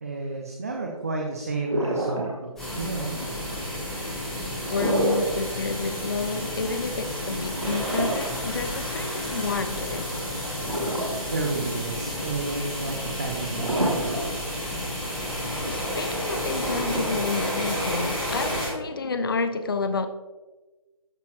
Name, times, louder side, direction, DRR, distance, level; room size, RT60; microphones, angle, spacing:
voice 1, 0.0-3.2 11.3-14.4, right 3 dB, 25° right, 0.5 m, -32 dB
sound 1, 1.7-2.7 4.6-5.4 5.8-5.9 7.5-9.0 10.6-11.5 11.9-12.0 13.5-14.5 14.8-14.9 16.6-17.7, right 1 dB, 60° right, 1.8 m, -28 dB
sound 2, 2.6-18.7, equal, ahead, 1.3 m, -31 dB
voice 2, 4.7-10.1 15.7-20.1, left 4 dB, 40° left, 0.4 m, -30 dB
12.0 x 4.1 x 3.0 m
figure-of-eight pair, 155°, 18 cm